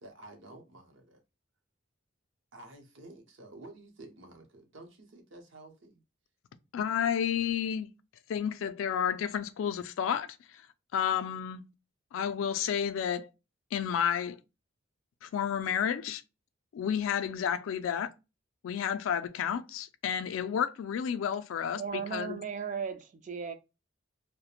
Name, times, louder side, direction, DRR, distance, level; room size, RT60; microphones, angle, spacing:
voice 1, 0.0-1.2 2.5-6.0, right 2 dB, 65° right, 0.7 m, -51 dB
voice 2, 6.7-7.9 8.3-10.3 10.9-11.6 12.1-13.3 13.7-14.4 15.2-16.2 16.7-18.1 18.6-22.4, left 8 dB, 75° left, 0.3 m, -31 dB
voice 3, 21.8-23.5, right 6 dB, 35° right, 0.3 m, -36 dB
2.3 x 2.1 x 2.8 m
head